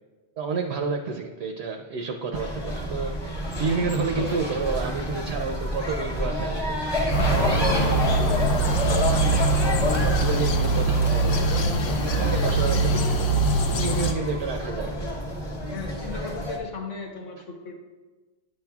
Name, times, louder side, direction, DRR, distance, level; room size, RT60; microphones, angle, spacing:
voice 1, 0.4-6.8 7.1-9.4 9.9-11.3 11.8-13.4 13.7-15.0, right 4 dB, 65° right, 4 dB, 0.8 m, -30 dB
sound 1, 2.3-16.6, equal, 25° left, 0.9 m, -29 dB
voice 2, 3.6-4.7 15.7-17.8, left 3 dB, 85° left, 0 dB, 1.5 m, -36 dB
sound 2, 7.1-14.1, right 2 dB, 65° left, 0.9 m, -23 dB
10.5 x 7.1 x 2.3 m, 1.2 s
omnidirectional pair, 1.2 m